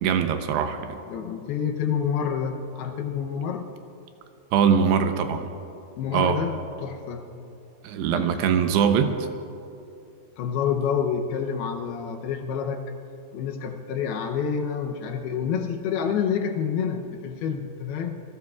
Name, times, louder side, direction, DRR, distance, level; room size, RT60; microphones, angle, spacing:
voice 1, 0.0-1.0 4.5-5.5 6.1-6.4 7.8-9.2, right 7 dB, 80° right, 7 dB, 2.8 m, -22 dB
voice 2, 1.1-3.7 6.0-7.3 8.1-8.4 10.4-12.9 13.3-18.2, left 7 dB, 75° left, 4 dB, 2.6 m, -28 dB
26.5 x 18.5 x 2.4 m, 2.6 s
omnidirectional pair, 4.8 m